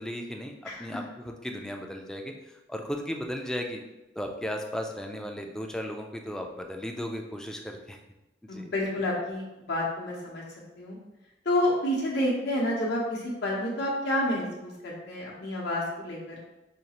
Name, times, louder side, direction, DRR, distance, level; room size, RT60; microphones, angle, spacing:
voice 1, 0.0-2.3 2.7-3.8 4.2-8.0 8.5-8.7, equal, 5° left, 2 dB, 0.3 m, -35 dB
voice 2, 8.5-10.4 10.8-11.0 11.4-16.5, left 1 dB, 65° left, -4 dB, 0.8 m, -29 dB
5.1 x 2.4 x 2.9 m, 0.99 s
head